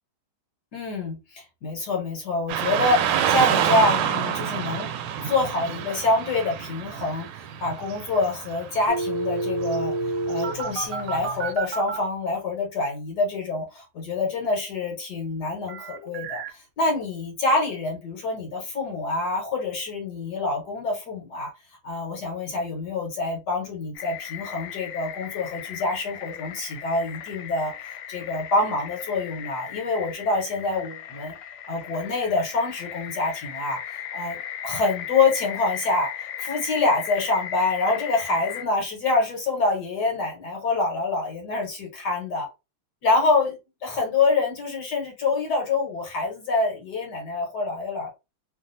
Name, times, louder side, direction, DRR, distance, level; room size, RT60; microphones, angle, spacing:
voice 1, 0.7-4.9 5.2-21.5 21.8-27.7 28.1-31.3 31.7-33.8 34.1-42.5 43.0-48.1, left 3 dB, 60° left, 1.4 m, -26 dB
Car passing by / Traffic noise roadway noise, 2.5-11.5, right 9 dB, 80° right, 1.4 m, -28 dB
sound 1, 8.9-12.0 15.7-16.5, right 3 dB, 65° right, 0.8 m, -29 dB
sound 2, 23.9-38.6, left 10 dB, 75° left, 0.9 m, -37 dB
3.3 x 2.5 x 2.6 m
omnidirectional pair, 2.3 m